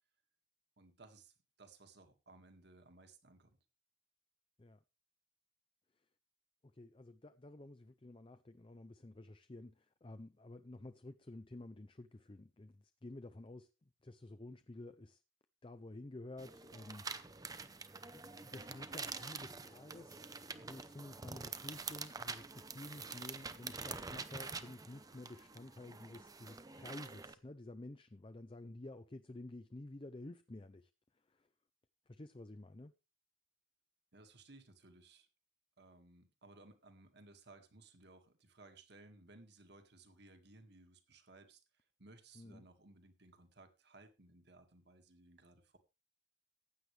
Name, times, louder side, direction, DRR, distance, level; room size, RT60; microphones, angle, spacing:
voice 1, 0.8-3.6 34.1-35.3 35.8-45.8, right 2 dB, 55° right, 2.0 m, -61 dB
voice 2, 6.7-15.2 15.6-17.5 18.1-20.2 20.5-30.9 31.3-31.5 32.1-32.9 42.3-42.6, left 2 dB, 25° left, 0.5 m, -52 dB
sound 1, 16.4-27.3, right 4 dB, 20° right, 0.7 m, -47 dB
15.5 x 9.6 x 3.3 m
head